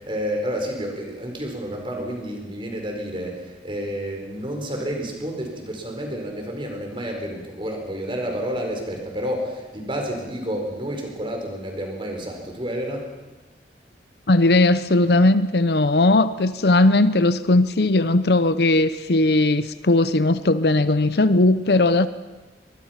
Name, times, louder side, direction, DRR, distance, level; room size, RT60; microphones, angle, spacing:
voice 1, 0.0-13.1, equal, 30° right, 4.6 m, -30 dB
voice 2, 14.3-22.1, left 2 dB, 60° left, 0.8 m, -18 dB
24.0 x 21.0 x 5.9 m
head